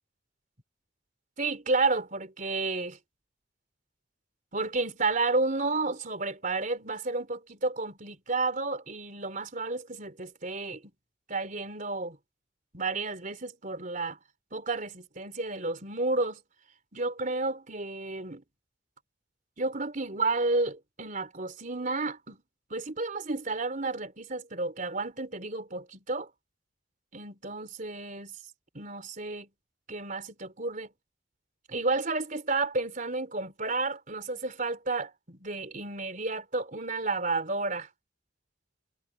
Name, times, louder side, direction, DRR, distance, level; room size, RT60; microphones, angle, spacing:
voice 1, 1.4-3.0 4.5-10.8 11.3-12.2 12.7-14.2 14.5-16.4 16.9-18.4 19.6-22.4 22.7-26.3 27.1-28.4 28.7-29.5 29.9-30.9 31.7-37.9, right 3 dB, 45° right, 4.0 m, -31 dB
head